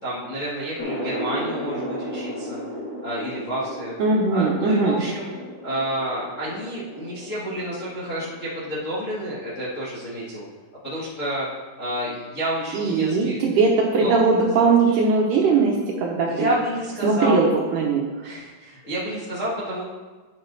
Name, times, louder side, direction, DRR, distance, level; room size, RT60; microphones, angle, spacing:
voice 1, 0.0-2.6 3.0-3.9 4.3-5.3 5.6-10.4 10.8-11.5 11.8-13.4 14.0-15.0 16.2-17.5 18.2-19.8, right 1 dB, 80° left, -9 dB, 0.7 m, -29 dB
sound 1, 0.8-10.0, equal, 35° left, 2.3 m, -35 dB
voice 2, 4.0-5.0 12.7-16.5 17.0-18.0, right 4 dB, 75° right, -1 dB, 1.9 m, -20 dB
9.9 x 6.1 x 4.0 m, 1.3 s
omnidirectional pair, 4.6 m